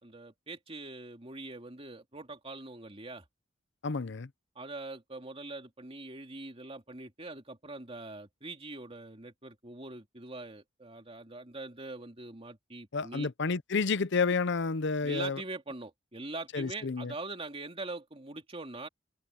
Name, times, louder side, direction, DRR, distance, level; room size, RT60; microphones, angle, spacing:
voice 1, 0.0-3.2 4.5-13.3 15.0-18.9, right 2 dB, 30° right, 2.9 m, -43 dB
voice 2, 3.8-4.3 12.9-15.4 16.5-17.1, left 4 dB, 60° left, 0.7 m, -30 dB
head